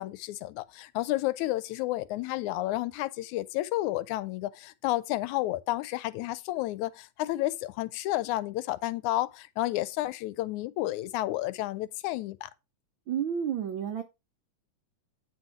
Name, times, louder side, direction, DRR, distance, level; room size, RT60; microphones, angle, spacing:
voice 1, 0.0-12.5, left 16 dB, 90° left, 2.1 m, -31 dB
voice 2, 13.1-14.0, right 8 dB, 85° right, 1.0 m, -30 dB
9.4 x 4.2 x 5.9 m
omnidirectional pair, 3.4 m